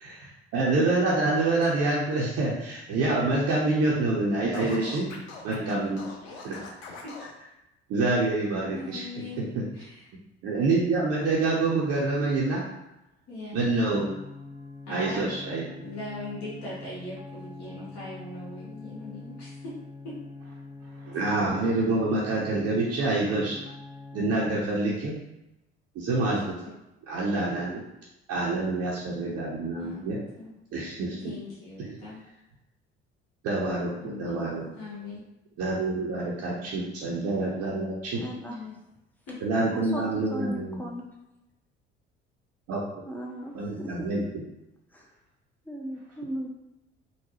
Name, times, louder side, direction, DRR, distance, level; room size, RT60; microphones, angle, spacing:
voice 1, 0.0-5.1 5.4-6.1 6.4-6.6 7.9-9.0 9.5-9.6 10.4-12.6 13.5-14.1 14.9-15.6 21.0-23.6 24.1-25.2 26.0-26.4 27.1-27.8 28.3-30.2 30.7-31.2 33.4-34.6 35.6-38.2 39.4-40.8 42.7-42.8 43.5-44.2, right 2 dB, 45° right, -4 dB, 0.7 m, -26 dB
Scratching (performance technique), 4.5-7.3, left 4 dB, 70° left, 0.6 m, -43 dB
voice 2, 4.6-5.0 5.5-6.0 6.3-6.4 7.0-7.1 8.7-9.4 9.7-10.1 13.3-13.7 14.8-15.2 15.5-19.7 20.0-20.1 26.1-26.3 26.6-26.7 29.8-30.5 31.2-32.2 34.0-34.4 34.7-35.2 37.0-37.2 38.4-38.7 39.3-39.4, left 2 dB, 45° left, -8 dB, 1.4 m, -40 dB
sound 1, 13.9-24.5, left 3 dB, 30° left, 1.4 m, -44 dB
voice 3, 38.1-38.6 39.7-41.1 43.0-44.3 44.9-45.1 45.7-46.5, right 1 dB, 5° left, -1 dB, 0.7 m, -37 dB
3.9 x 2.1 x 3.0 m, 0.92 s
figure-of-eight pair, 55°, 33 cm